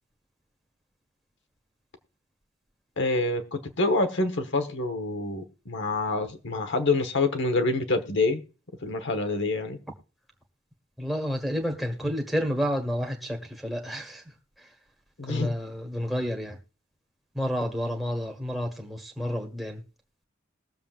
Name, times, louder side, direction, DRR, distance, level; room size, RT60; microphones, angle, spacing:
voice 1, 3.0-8.4 8.8-9.8 15.2-15.5, left 2 dB, 60° left, 1.3 m, -26 dB
voice 2, 11.0-14.2 15.3-16.6 17.3-19.8, equal, ahead, 1.5 m, -30 dB
21.0 x 7.2 x 2.5 m
head